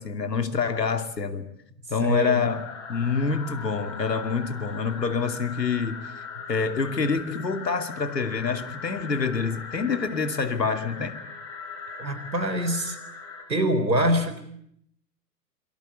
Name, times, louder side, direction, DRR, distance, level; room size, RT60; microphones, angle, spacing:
voice 1, 0.0-1.5 1.9-2.6 2.9-11.1, left 5 dB, 75° left, 2.8 m, -27 dB
voice 2, 2.0-2.5 12.0-13.0 13.5-14.4, equal, 80° right, 4.3 m, -24 dB
sound 1, 2.5-13.4, left 5 dB, 25° left, 7.0 m, -40 dB
27.5 x 24.0 x 8.4 m
figure-of-eight pair, 105°, 50 cm